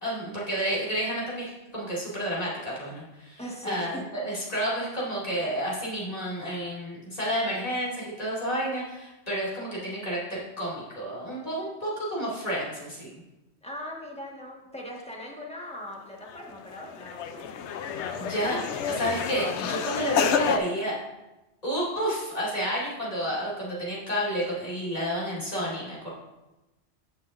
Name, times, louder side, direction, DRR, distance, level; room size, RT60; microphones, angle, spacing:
voice 1, 0.0-13.2 18.2-18.6 18.9-21.0 21.6-26.1, right 1 dB, 35° left, -7 dB, 2.5 m, -30 dB
voice 2, 3.4-4.0 13.6-17.5 17.9-18.5, left 1 dB, 5° left, -3 dB, 1.4 m, -40 dB
sound 1, 16.2-16.4 16.7-20.6, left 8 dB, 85° left, 0.9 m, -29 dB
14.5 x 5.6 x 2.5 m, 1.0 s
omnidirectional pair, 1.1 m